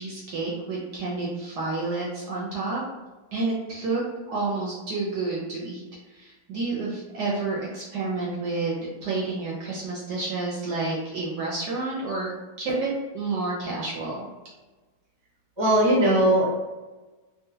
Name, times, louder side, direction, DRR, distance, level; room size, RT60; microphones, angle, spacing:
voice 1, 0.0-2.8 3.3-4.0 4.3-5.8 6.1-14.3, right 3 dB, 70° right, -4 dB, 1.1 m, -29 dB
voice 2, 15.6-16.5, right 1 dB, 20° right, -6 dB, 0.7 m, -19 dB
3.7 x 2.2 x 2.7 m, 1.2 s
omnidirectional pair, 2.2 m